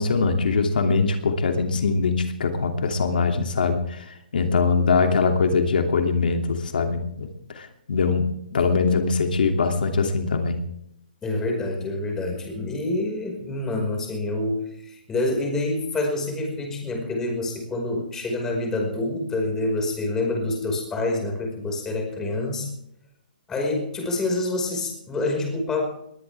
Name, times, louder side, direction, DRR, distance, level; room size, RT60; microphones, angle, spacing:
voice 1, 0.0-4.0 4.3-10.6, left 4 dB, 70° left, 4 dB, 2.8 m, -22 dB
voice 2, 11.2-22.7 23.5-25.8, left 2 dB, 10° left, 2 dB, 5.3 m, -27 dB
21.5 x 18.5 x 3.5 m, 0.76 s
hypercardioid pair, 160°, 5 cm